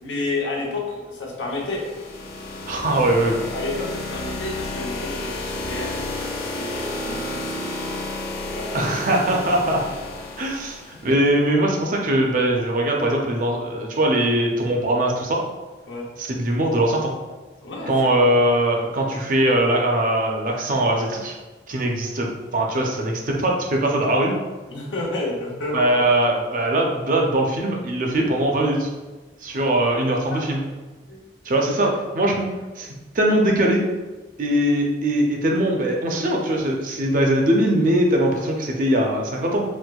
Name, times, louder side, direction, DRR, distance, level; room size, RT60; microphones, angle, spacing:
voice 1, 0.0-1.8 3.5-7.8 8.4-8.9 15.9-16.1 17.6-18.4 24.7-25.9 30.3-30.4 31.1-31.3, left 2 dB, 85° left, -2 dB, 0.7 m, -31 dB
sound 1, 1.4-11.2, left 2 dB, 55° left, 0.5 m, -31 dB
voice 2, 2.7-3.4 8.7-9.8 10.4-15.4 16.2-17.1 17.9-21.3 21.7-24.3 25.7-28.9 29.4-30.6 31.4-32.9 33.1-33.8 34.4-39.6, right 1 dB, 45° right, 0 dB, 0.5 m, -21 dB
4.4 x 2.1 x 2.3 m, 1.2 s
head